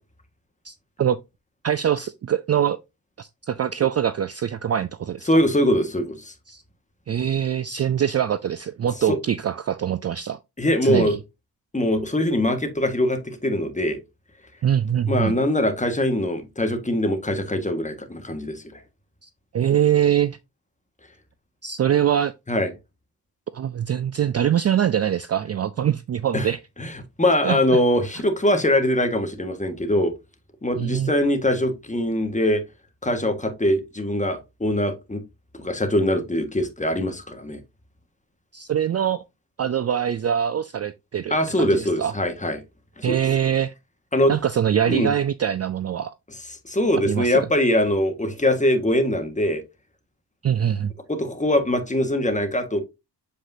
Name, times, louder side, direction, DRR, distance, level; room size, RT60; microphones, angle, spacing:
voice 1, 0.6-1.2 1.6-2.8 3.2-5.3 6.5-6.6 7.1-10.4 10.8-11.2 14.6-15.4 19.2-20.4 21.6-22.3 23.5-26.6 27.4-27.8 28.1-28.2 30.7-31.1 38.5-39.2 39.6-42.1 43.0-43.7 44.3-46.1 47.0-47.5 50.4-50.9, right 9 dB, 40° right, 0.4 m, -23 dB
voice 2, 5.3-6.3 9.1-9.2 10.6-11.2 11.7-14.0 15.1-18.8 22.5-22.7 26.3-26.5 26.8-26.9 27.2-30.1 30.6-32.6 33.0-35.2 35.5-37.6 41.3-42.6 43.0-43.2 44.1-44.3 44.9-45.1 46.7-49.6 51.1-52.8, left 1 dB, 15° left, 1.7 m, -22 dB
7.6 x 5.0 x 2.7 m
cardioid pair, 60°, 42 cm